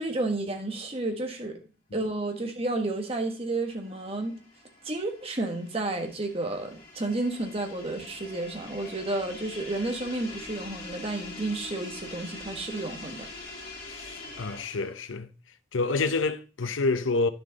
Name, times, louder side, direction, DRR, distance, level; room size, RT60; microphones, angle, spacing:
voice 1, 0.0-1.6 1.9-4.4 4.8-13.3, right 2 dB, 30° right, 1.6 m, -31 dB
sound 1, 3.2-15.1, left 2 dB, 50° left, 3.0 m, -44 dB
voice 2, 14.0-15.3 15.7-17.3, left 3 dB, 90° left, 0.8 m, -28 dB
10.5 x 6.7 x 4.1 m
head